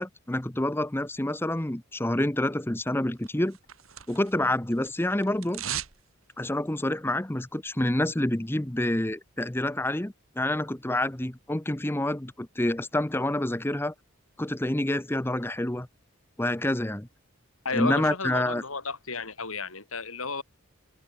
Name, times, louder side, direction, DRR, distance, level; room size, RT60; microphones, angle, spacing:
voice 1, 0.0-3.6 4.1-5.6 6.4-13.9 14.4-15.9 16.4-17.1 17.7-18.6, left 1 dB, 10° left, 0.8 m, -28 dB
sound 1, 3.2-4.5 4.7-6.0 6.3-6.4, right 10 dB, 80° right, 4.9 m, -37 dB
voice 2, 17.6-20.4, left 4 dB, 80° left, 5.2 m, -33 dB
head